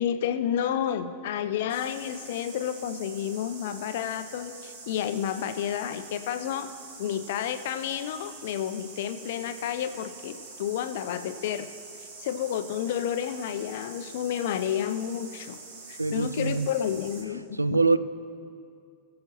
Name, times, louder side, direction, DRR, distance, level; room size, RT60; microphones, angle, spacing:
voice 1, 0.0-6.7 7.0-11.7 12.2-15.6 15.9-17.8, left 9 dB, 55° left, 9 dB, 0.6 m, -30 dB
sound 1, 1.7-17.2, right 4 dB, 55° right, 1.6 m, -45 dB
voice 2, 16.0-16.7 17.5-18.0, right 3 dB, 85° right, 14 dB, 0.3 m, -24 dB
19.0 x 7.4 x 3.0 m, 2.4 s
figure-of-eight pair, 90°, 0 cm